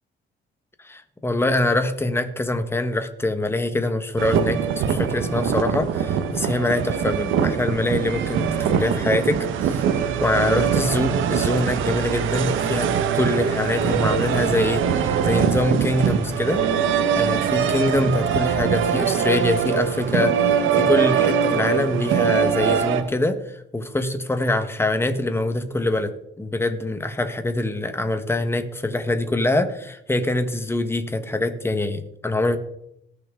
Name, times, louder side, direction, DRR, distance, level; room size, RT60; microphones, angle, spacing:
voice 1, 0.8-32.6, left 2 dB, 10° left, 9 dB, 1.3 m, -24 dB
sound 1, 4.2-23.0, right 7 dB, 85° right, 1.1 m, -22 dB
19.0 x 6.8 x 3.8 m, 0.78 s
cardioid pair, 90°, 20 cm